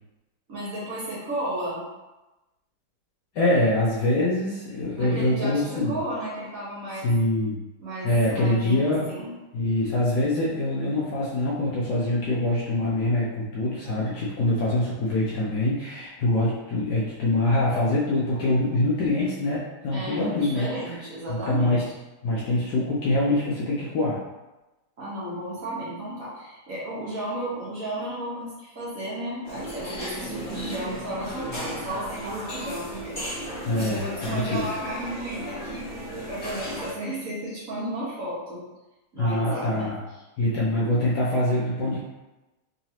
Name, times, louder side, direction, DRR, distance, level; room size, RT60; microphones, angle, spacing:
voice 1, 0.5-1.8 5.0-7.1 7.8-9.3 19.9-21.8 25.0-33.2 33.5-35.9 36.3-38.6 39.1-39.7, right 1 dB, 45° right, -9 dB, 1.3 m, -33 dB
voice 2, 3.3-6.0 7.0-7.6 8.0-9.0 9.5-21.0 21.3-21.8 22.2-24.2 33.7-34.7 39.2-40.0 40.4-42.0, left 1 dB, 65° left, -7 dB, 1.1 m, -24 dB
sound 1, 29.4-36.9, equal, 35° left, 1.2 m, -35 dB
3.9 x 3.0 x 2.8 m, 1.0 s
omnidirectional pair, 2.3 m